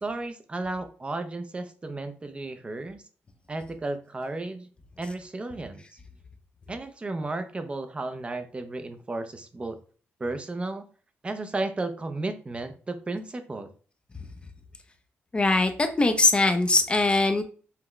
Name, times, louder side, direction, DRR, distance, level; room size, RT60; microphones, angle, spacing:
voice 1, 0.0-3.0 3.5-4.7 5.0-5.8 6.7-9.8 10.2-10.8 11.2-13.7, right 2 dB, 25° right, 8 dB, 0.6 m, -33 dB
voice 2, 15.3-17.4, left 2 dB, 25° left, 7 dB, 0.5 m, -21 dB
5.7 x 2.2 x 3.1 m, 0.40 s
cardioid pair, 100°, 5 cm